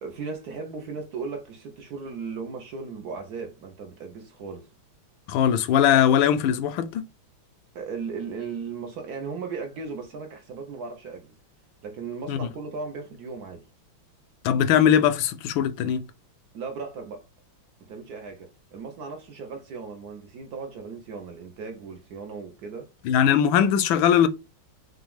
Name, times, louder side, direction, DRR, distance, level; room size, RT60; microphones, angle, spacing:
voice 1, 0.0-4.7 7.7-11.3 11.8-13.6 16.5-17.3 17.8-22.9, right 5 dB, 60° right, 1.1 m, -36 dB
voice 2, 5.3-7.0 12.3-12.4 14.4-16.0 23.0-24.3, left 9 dB, 80° left, 1.3 m, -20 dB
5.9 x 2.4 x 3.4 m
omnidirectional pair, 2.2 m